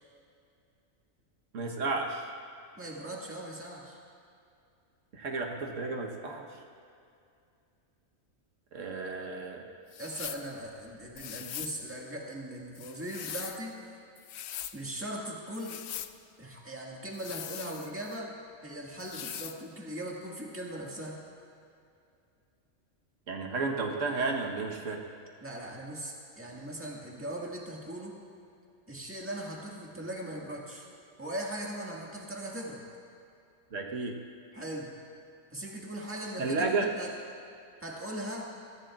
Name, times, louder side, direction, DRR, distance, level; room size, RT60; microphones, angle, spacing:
voice 1, 1.5-2.2 5.1-6.5 8.7-9.6 23.3-25.0 33.7-34.2 36.4-36.9, right 3 dB, 85° right, 2 dB, 1.5 m, -32 dB
voice 2, 2.8-4.0 10.0-13.8 14.7-15.8 16.4-18.3 18.6-21.2 25.4-28.2 28.9-30.9 31.2-32.8 34.5-34.9 35.5-37.1 37.8-38.5, right 1 dB, 10° right, -3 dB, 1.7 m, -39 dB
sound 1, 9.9-10.5 11.2-11.8 12.8-13.6 14.2-14.8 15.5-16.1 17.1-18.2 19.0-19.6, left 10 dB, 65° left, 0.8 m, -41 dB
22.5 x 14.0 x 2.4 m, 2.5 s
omnidirectional pair, 1.3 m